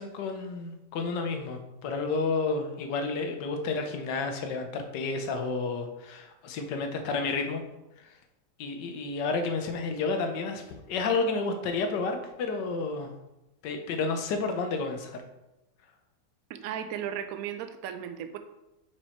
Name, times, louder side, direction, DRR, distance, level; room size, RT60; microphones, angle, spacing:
voice 1, 0.0-7.6 8.0-8.2 8.6-13.1 13.6-15.2, left 4 dB, 90° left, 6 dB, 1.4 m, -31 dB
voice 2, 16.5-18.4, right 9 dB, 70° right, 9 dB, 0.9 m, -35 dB
5.3 x 4.7 x 4.3 m, 0.95 s
omnidirectional pair, 1.8 m